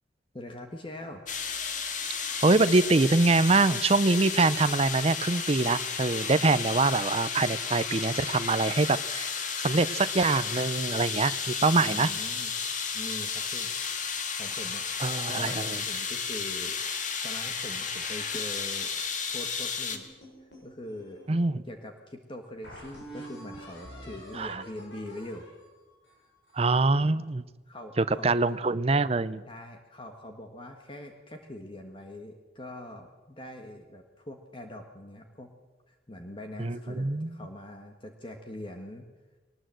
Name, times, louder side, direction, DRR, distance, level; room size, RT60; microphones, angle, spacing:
voice 1, 0.3-1.2 11.8-12.5 12.9-13.7 14.4-14.9 15.3-16.8 17.2-18.9 19.3-20.1 20.6-21.2 21.6-25.5 27.7-28.3 29.5-35.5 35.9-39.1, left 1 dB, 30° left, 4 dB, 1.5 m, -42 dB
sound 1, 1.3-20.0, left 6 dB, 45° left, 1.9 m, -33 dB
voice 2, 2.4-9.3 9.6-12.1 15.0-15.8 21.3-21.6 24.4-24.6 26.5-27.4 28.0-29.4 36.6-37.3, right 3 dB, 35° right, 13 dB, 0.6 m, -24 dB
sound 2, 19.9-21.5 22.0-22.1 22.6-26.8, right 1 dB, 80° left, 7.8 m, -47 dB
21.5 x 19.5 x 7.7 m, 1.2 s
head